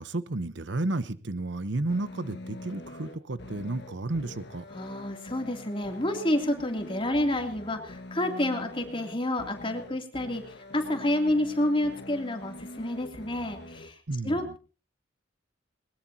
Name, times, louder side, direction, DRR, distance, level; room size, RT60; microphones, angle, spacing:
voice 1, 0.0-4.6 14.1-14.6, right 2 dB, 60° right, 0.9 m, -32 dB
sound 1, 1.9-13.9, left 1 dB, 55° left, 1.7 m, -44 dB
voice 2, 4.7-14.0 14.2-14.6, left 1 dB, 25° left, 2.9 m, -29 dB
21.5 x 20.0 x 2.9 m
head